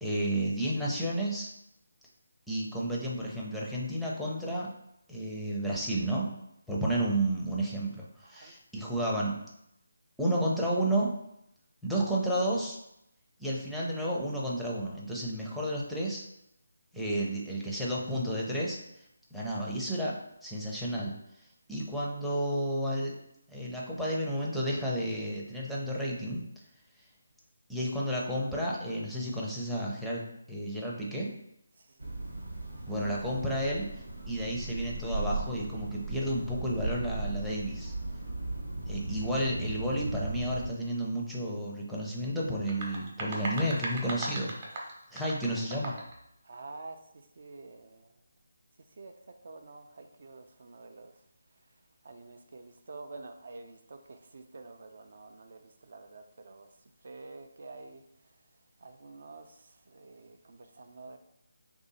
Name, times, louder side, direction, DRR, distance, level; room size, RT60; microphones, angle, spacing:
voice 1, 0.0-1.5 2.5-4.7 5.1-6.3 6.7-9.3 10.2-11.1 11.8-12.8 13.4-16.3 16.9-18.8 19.3-20.2 20.4-21.1 21.7-23.1 23.5-26.4 27.7-30.2 30.5-31.3 32.9-33.9 34.3-37.9 38.8-44.5 45.1-45.9, right 1 dB, ahead, 0.5 m, -31 dB
voice 2, 8.2-8.5 31.8-32.1 39.2-39.3 46.4-48.1 48.9-49.1 49.4-51.2 52.0-58.3 58.8-61.2, right 3 dB, 55° right, 0.4 m, -48 dB
sound 1, 32.0-40.7, right 2 dB, 85° right, 0.9 m, -37 dB
sound 2, 42.5-46.2, right 2 dB, 30° right, 0.8 m, -38 dB
3.3 x 2.7 x 4.0 m
figure-of-eight pair, 160°, 0 cm